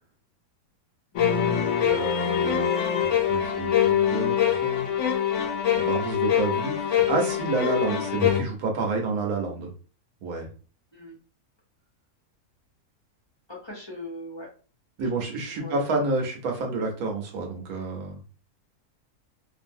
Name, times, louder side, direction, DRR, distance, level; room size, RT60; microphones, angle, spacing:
sound 1, 1.2-8.4, left 9 dB, 65° left, 0.8 m, -24 dB
voice 1, 1.8-2.7 3.0-4.8 5.7-9.7 10.2-10.5 15.0-18.2, right 3 dB, 75° right, 1 dB, 1.2 m, -29 dB
voice 2, 13.5-14.5 15.0-15.2 15.5-15.9, left 1 dB, 30° left, -3 dB, 0.5 m, -40 dB
2.6 x 2.6 x 2.6 m, 0.37 s
omnidirectional pair, 1.6 m